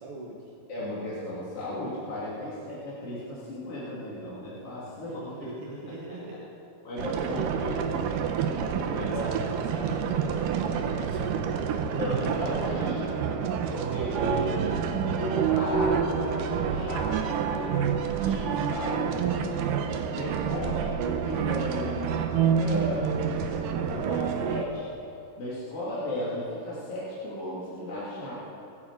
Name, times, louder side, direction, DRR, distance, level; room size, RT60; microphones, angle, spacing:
voice 1, 0.0-0.5 2.0-2.8 4.9-6.6 8.7-11.4, right 1 dB, 55° right, -3 dB, 1.5 m, -43 dB
voice 2, 0.7-5.5 6.8-8.1 8.8-9.3 11.9-13.1 13.7-19.4 20.1-23.1 23.7-24.8 25.4-28.3, left 1 dB, 40° left, -8 dB, 3.1 m, -35 dB
sound 1, 7.0-24.6, right 7 dB, 80° right, 2.0 m, -28 dB
24.0 x 8.8 x 4.7 m, 2.7 s
omnidirectional pair, 4.8 m